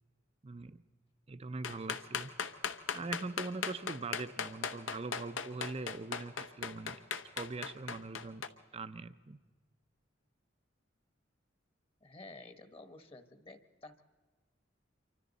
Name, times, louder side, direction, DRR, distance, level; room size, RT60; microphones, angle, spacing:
voice 1, 0.4-0.8 1.3-2.3 2.9-7.0 7.4-8.5 8.7-9.4, right 3 dB, 30° right, 12 dB, 0.5 m, -42 dB
sound 1, 1.6-8.5, left 6 dB, 85° left, 1.0 m, -37 dB
voice 2, 12.0-14.0, left 2 dB, 30° left, 9 dB, 1.1 m, -52 dB
27.5 x 24.5 x 4.1 m, 1.4 s
head